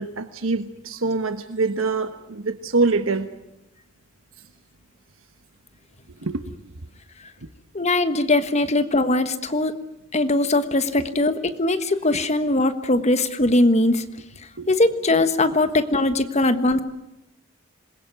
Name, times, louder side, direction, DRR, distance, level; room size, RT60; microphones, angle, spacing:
voice 1, 0.0-3.3 6.2-6.6 12.1-12.2 14.6-14.7, right 3 dB, 80° right, 9 dB, 1.2 m, -25 dB
voice 2, 7.7-9.7 10.1-14.0 14.7-16.8, left 2 dB, 35° left, 10 dB, 1.4 m, -20 dB
27.0 x 21.5 x 9.3 m, 0.87 s
head